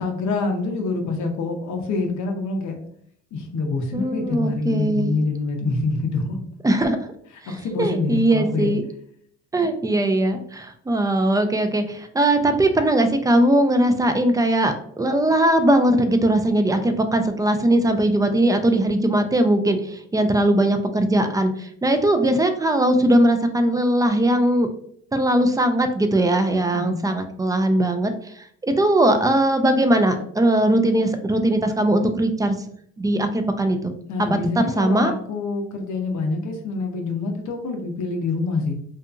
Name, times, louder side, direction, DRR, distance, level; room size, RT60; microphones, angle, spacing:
voice 1, 0.0-2.8 3.3-6.4 7.5-8.7 26.7-27.0 34.1-38.7, left 3 dB, 70° left, 3 dB, 0.6 m, -26 dB
voice 2, 3.9-5.1 6.6-7.0 7.4-7.5 7.8-8.8 9.5-24.7 25.1-32.6 33.0-33.9 34.8-35.1, right 1 dB, 10° right, 7 dB, 0.3 m, -20 dB
2.8 x 2.4 x 2.3 m, 0.65 s
cardioid pair, 90°, 30 cm